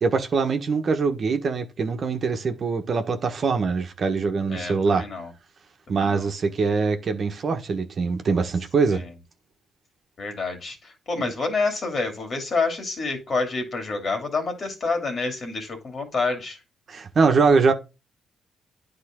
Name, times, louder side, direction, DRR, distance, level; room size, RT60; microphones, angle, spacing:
voice 1, 0.0-5.0 5.9-9.0 11.2-11.3 16.9-17.7, right 4 dB, 50° right, 1.3 m, -23 dB
voice 2, 4.5-5.3 5.9-6.3 8.9-9.1 10.2-16.6, left 3 dB, 45° left, 2.7 m, -28 dB
9.6 x 3.8 x 3.7 m
cardioid pair, 90°, 0 cm